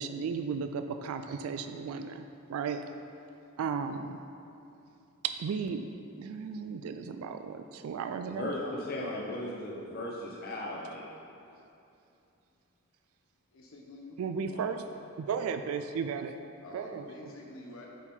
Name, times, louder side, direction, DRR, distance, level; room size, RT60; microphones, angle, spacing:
voice 1, 0.0-2.8 3.6-4.2 5.2-5.9 6.2-8.5 14.2-16.4 16.7-17.1, right 6 dB, 85° right, 8 dB, 0.3 m, -35 dB
voice 2, 8.2-11.1 14.5-14.8, left 1 dB, 45° left, -4 dB, 0.9 m, -37 dB
voice 3, 13.5-14.2 16.6-17.9, left 1 dB, 70° left, -1 dB, 1.0 m, -47 dB
8.2 x 4.5 x 3.9 m, 2.7 s
head